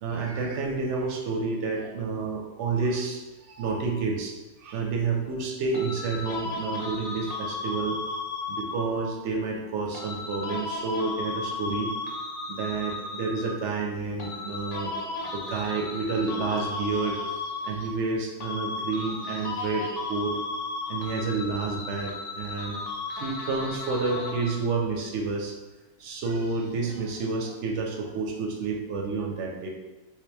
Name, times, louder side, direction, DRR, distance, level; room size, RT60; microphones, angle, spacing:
voice 1, 0.0-3.2 3.5-4.3 4.6-8.0 8.5-11.9 12.5-14.9 15.3-20.4 20.9-22.8 23.2-25.5 26.0-29.7, right 4 dB, 65° right, 1 dB, 0.7 m, -29 dB
sound 1, 5.7-9.1 9.9-13.7 14.2-18.1 18.4-24.7, left 3 dB, 65° left, 0.9 m, -35 dB
3.4 x 2.9 x 3.3 m, 1.1 s
omnidirectional pair, 1.6 m